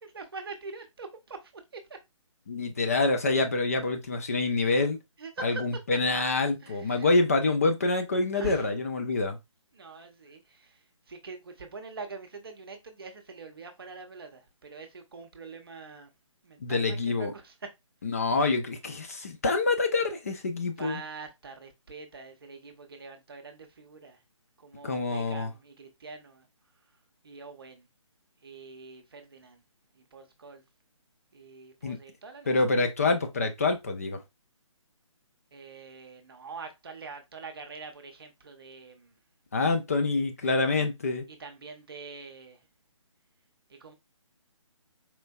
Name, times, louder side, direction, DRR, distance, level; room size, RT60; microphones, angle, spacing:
voice 1, 0.0-1.4 1.7-1.8 5.2-5.6 6.6-7.1 8.3-8.7 9.7-10.4 11.1-16.1 16.4-17.5 20.8-24.2 24.6-26.4 27.2-27.8 28.4-29.6 30.1-30.6 31.3-32.5 35.5-39.1 41.4-42.6 43.8-43.9, right 4 dB, 45° right, 0.7 m, -44 dB
voice 2, 2.5-5.0 5.4-9.4 16.6-17.3 18.0-21.0 24.8-25.5 31.8-32.0 32.5-34.2 39.5-41.2, left 3 dB, 30° left, 0.4 m, -26 dB
4.3 x 2.5 x 2.3 m
figure-of-eight pair, 145°, 17 cm